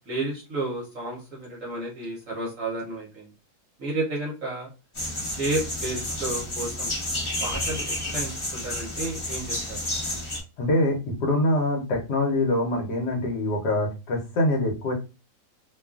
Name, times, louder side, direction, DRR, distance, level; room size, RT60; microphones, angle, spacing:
voice 1, 0.1-3.3 3.8-4.7 5.3-6.9 7.4-9.8, right 2 dB, 60° right, -3 dB, 1.1 m, -32 dB
sound 1, 4.9-10.4, left 1 dB, 45° left, 0.3 m, -30 dB
voice 2, 10.6-14.9, left 1 dB, 80° left, 0 dB, 1.3 m, -24 dB
2.9 x 2.3 x 2.3 m, 0.30 s
omnidirectional pair, 1.8 m